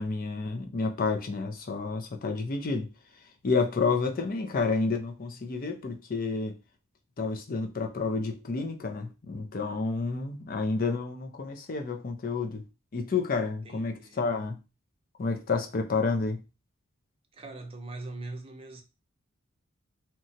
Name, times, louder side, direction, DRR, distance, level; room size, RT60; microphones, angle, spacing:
voice 1, 0.0-2.9 3.4-6.5 7.2-12.6 12.9-14.6 15.2-16.4, left 4 dB, 45° left, 0.5 m, -30 dB
voice 2, 13.6-14.4 17.3-18.8, right 2 dB, 25° right, 0.6 m, -42 dB
2.8 x 2.3 x 2.7 m
head